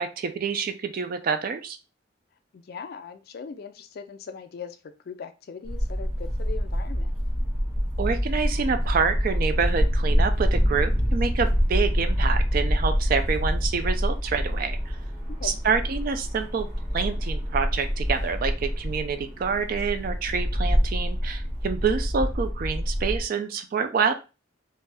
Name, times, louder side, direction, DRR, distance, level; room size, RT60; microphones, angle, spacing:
voice 1, 0.0-1.8 8.0-15.0 15.4-16.7 16.9-24.1, right 5 dB, 45° right, 9 dB, 0.3 m, -27 dB
voice 2, 2.5-7.1 15.3-15.6, left 5 dB, 50° left, 8 dB, 0.3 m, -40 dB
sound 1, 5.6-23.2, equal, 25° right, 1.1 m, -26 dB
2.6 x 2.2 x 3.2 m, 0.31 s
head